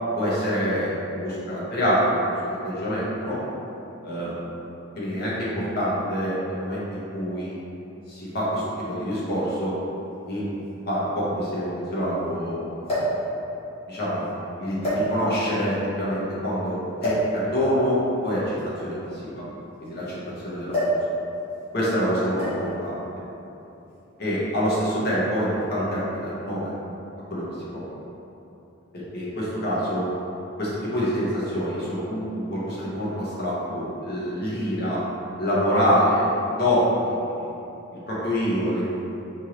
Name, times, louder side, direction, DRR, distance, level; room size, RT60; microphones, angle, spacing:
voice 1, 0.2-3.4 4.0-4.5 4.9-7.6 8.1-9.8 10.3-10.4 10.9-13.0 13.9-14.3 14.6-18.5 18.8-19.4 19.8-20.2 20.4-20.8 21.7-22.9 24.2-26.7 27.3-27.4 27.7-27.8 29.1-30.0 30.6-35.0 35.4-37.5 38.1-39.0, equal, 50° left, -8 dB, 1.1 m, -26 dB
sound 1, 9.1-9.2 10.3-10.4 10.7-10.8 12.8-13.2 14.1-14.3 14.8-15.5 17.0-17.3 18.5-20.1 20.7-21.1 21.3-21.6 22.4-22.8 23.7-24.0, equal, 30° left, 1.5 m, -26 dB
4.4 x 3.1 x 3.0 m, 3.0 s
head